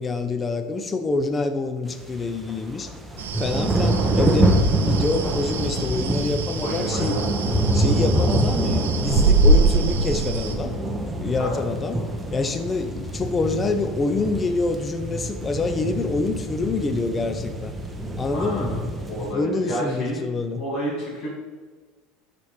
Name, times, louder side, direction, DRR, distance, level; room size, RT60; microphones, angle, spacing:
voice 1, 0.0-2.9 3.4-4.5 4.9-7.1 7.7-10.7 11.2-12.0 12.3-17.7 18.2-18.8 19.3-20.6, left 3 dB, 25° left, 8 dB, 0.6 m, -26 dB
sound 1, 1.9-19.3, right 1 dB, 10° right, 0.8 m, -25 dB
sound 2, 3.2-10.5, right 3 dB, 80° right, 0.5 m, -24 dB
voice 2, 3.9-4.3 6.6-7.2 11.4-11.6 18.3-18.8 19.1-20.3 20.6-21.3, equal, 60° left, -6 dB, 1.7 m, -30 dB
5.7 x 4.2 x 4.9 m, 1.4 s
hypercardioid pair, 80°, 0 cm